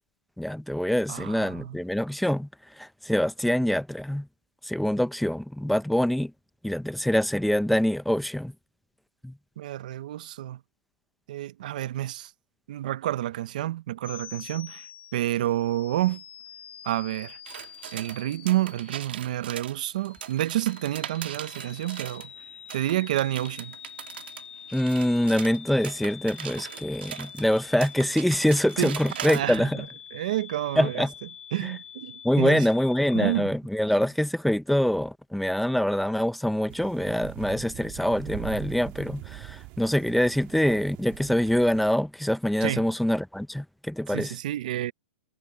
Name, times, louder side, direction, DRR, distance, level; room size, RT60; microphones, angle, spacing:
voice 1, 0.4-2.5 2.8-4.3 4.7-6.3 6.6-8.5 9.2-9.3 24.7-29.8 30.8-31.1 32.2-44.3, equal, ahead, 0.5 m, -25 dB
voice 2, 1.1-1.8 9.6-10.6 11.3-12.3 12.7-14.9 15.1-16.2 16.8-17.4 17.9-22.3 22.7-23.7 28.8-29.9 30.1-31.1 31.5-32.7 33.1-33.5 42.6-42.9 44.1-44.9, right 14 dB, 45° right, 0.6 m, -29 dB
sound 1, 14.0-33.4, left 9 dB, 80° left, 5.5 m, -46 dB
sound 2, 17.5-22.3 22.7-29.6, right 11 dB, 65° right, 1.5 m, -40 dB
sound 3, 36.7-41.9, right 20 dB, 30° right, 1.4 m, -42 dB
hypercardioid pair, 170°, 6 cm